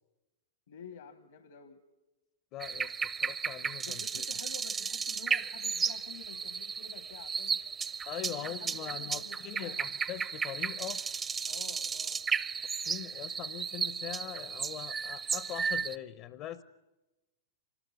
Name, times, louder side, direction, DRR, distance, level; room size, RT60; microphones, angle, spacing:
voice 1, 0.7-1.8 3.8-7.6 8.2-9.8 11.5-12.2, left 7 dB, 70° left, 10 dB, 1.4 m, -50 dB
voice 2, 2.5-4.2 8.1-11.0 12.8-16.6, left 12 dB, 45° left, 15 dB, 0.8 m, -42 dB
sound 1, 2.6-16.0, right 6 dB, 20° right, 0.8 m, -34 dB
25.0 x 20.0 x 9.7 m, 1.1 s
hypercardioid pair, 105°, 0 cm